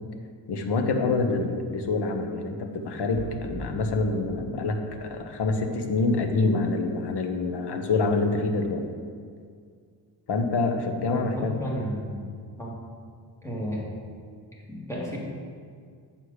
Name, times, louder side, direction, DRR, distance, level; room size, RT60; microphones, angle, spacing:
voice 1, 0.5-8.8 10.3-11.6, left 3 dB, 60° left, 5 dB, 1.0 m, -26 dB
sound 1, 3.2-6.0, right 4 dB, 30° right, 0.4 m, -42 dB
voice 2, 11.1-12.2 12.6-12.8 13.4-13.8 14.7-15.2, equal, 5° left, -4 dB, 1.9 m, -32 dB
7.6 x 4.8 x 6.4 m, 2.1 s
wide cardioid pair, 135°, 45 cm